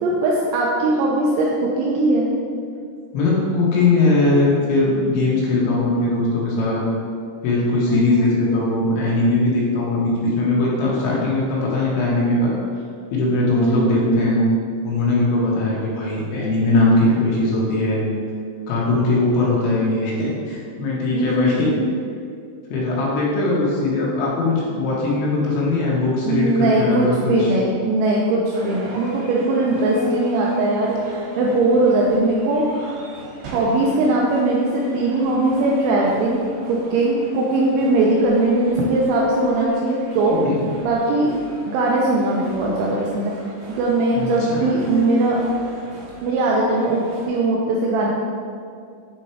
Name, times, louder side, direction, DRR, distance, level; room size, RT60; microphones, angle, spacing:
voice 1, 0.0-2.3 7.9-8.3 13.6-13.9 21.1-21.6 26.3-33.0 33.5-40.4 40.8-41.3 41.7-43.3 43.8-45.4 46.2-48.1, right 2 dB, 90° right, -3 dB, 2.6 m, -20 dB
voice 2, 3.1-6.8 7.4-12.5 13.1-14.4 14.8-18.0 18.7-21.7 22.7-27.5 40.4-40.6 44.1-44.7, left 2 dB, 75° left, -5 dB, 3.2 m, -20 dB
sound 1, 28.5-47.3, right 2 dB, 70° right, 3.8 m, -41 dB
8.2 x 3.9 x 4.4 m, 2.3 s
omnidirectional pair, 5.9 m